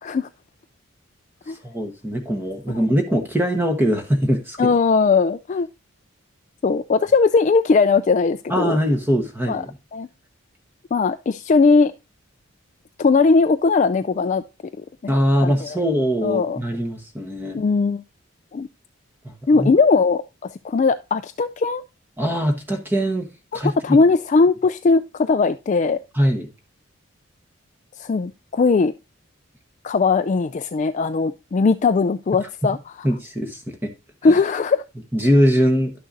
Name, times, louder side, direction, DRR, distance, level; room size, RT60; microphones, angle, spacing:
voice 1, 1.6-4.7 8.5-9.7 15.1-17.6 19.6-19.7 22.2-23.7 26.1-26.5 33.0-33.9 34.2-34.3 35.1-35.9, equal, 10° right, 1.0 m, -21 dB
voice 2, 4.6-5.7 6.6-8.8 9.5-9.6 9.9-10.1 10.9-11.9 13.0-14.4 15.0-15.1 15.4-15.8 16.2-16.6 17.5-18.0 18.5-18.7 19.5-21.8 23.5-26.0 28.0-28.9 29.8-33.1 34.2-34.8, left 4 dB, 35° left, 0.3 m, -19 dB
11.0 x 6.4 x 2.6 m
head